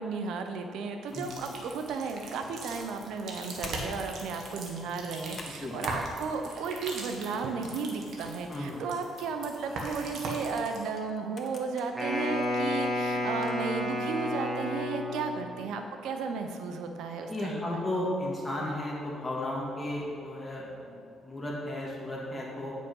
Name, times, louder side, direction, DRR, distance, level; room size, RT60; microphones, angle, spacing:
voice 1, 0.0-17.8, right 4 dB, 85° right, 5 dB, 0.9 m, -34 dB
sound 1, 1.1-10.9, right 2 dB, 70° right, 1.8 m, -41 dB
sound 2, 3.6-3.9 4.3-4.6 5.0-6.0 6.4-6.7 7.3-8.6 9.1-9.2 10.1-11.9 12.4-12.5 13.3-13.7, left 3 dB, 45° left, 1.2 m, -47 dB
voice 2, 8.5-8.8 17.3-22.7, left 1 dB, 15° left, -5 dB, 2.1 m, -34 dB
Wind instrument woodwind instrument, 11.9-15.4, left 1 dB, 5° right, 2.3 m, -31 dB
9.3 x 6.5 x 5.5 m, 2.3 s
cardioid pair, 90°, 0 cm